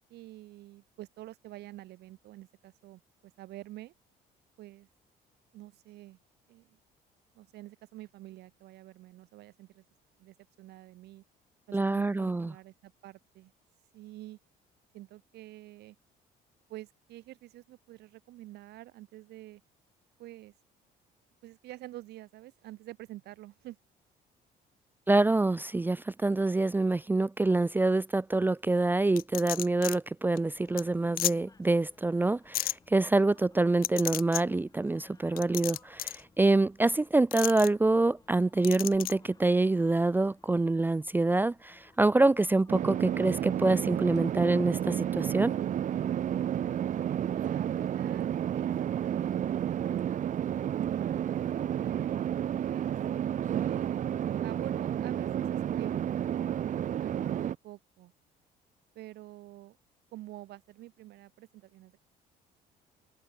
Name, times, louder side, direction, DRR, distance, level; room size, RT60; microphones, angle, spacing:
voice 1, 0.1-3.9 4.6-4.9 5.5-6.2 6.5-6.8 7.3-9.8 10.2-11.2 11.7-13.5 13.9-14.4 14.9-16.0 16.7-19.6 20.2-20.5 21.4-23.8 47.3-48.7 49.0-50.0 50.7-52.9 53.7-54.0 54.4-56.1 57.0-58.1 58.9-59.8 60.1-62.0, right 16 dB, 75° right, 2.4 m, -48 dB
voice 2, 11.7-12.5 25.1-45.5, right 2 dB, 10° right, 0.5 m, -26 dB
sound 1, 29.2-30.0 30.4-30.5 30.8-30.9 31.2-31.3 32.5-32.7 33.8-34.4 35.4-36.2 37.3-37.7 38.6-39.1, left 14 dB, 60° left, 0.5 m, -32 dB
sound 2, 30.5-43.3, left 4 dB, 20° left, 3.8 m, -62 dB
sound 3, 42.7-57.6, right 10 dB, 50° right, 1.1 m, -31 dB
cardioid pair, 110°, 17 cm